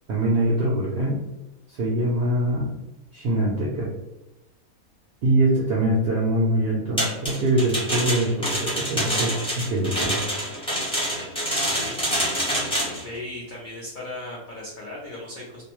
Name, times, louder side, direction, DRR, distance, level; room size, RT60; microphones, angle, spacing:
voice 1, 0.1-1.2 1.7-2.7 3.1-3.9 5.2-10.2, right 1 dB, 75° right, -4 dB, 0.5 m, -23 dB
sound 1, 7.0-13.0, equal, 10° left, 0.4 m, -26 dB
voice 2, 11.4-12.0 13.0-15.6, left 1 dB, 75° left, -5 dB, 0.4 m, -37 dB
2.6 x 2.1 x 2.9 m, 0.96 s
omnidirectional pair, 1.6 m